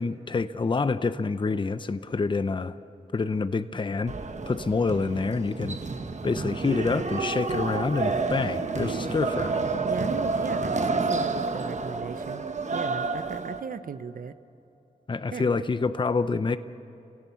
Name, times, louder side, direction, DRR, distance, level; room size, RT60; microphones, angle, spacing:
voice 1, 0.0-2.7 3.1-4.1 4.5-5.8 6.2-9.6 15.1-16.6, left 4 dB, 30° left, 12 dB, 0.7 m, -27 dB
sound 1, 4.1-13.6, right 4 dB, 50° right, 1.2 m, -29 dB
voice 2, 9.8-14.4 15.3-15.6, right 6 dB, 65° right, 12 dB, 0.9 m, -37 dB
28.5 x 17.0 x 7.0 m, 2.9 s
cardioid pair, 75°, 15 cm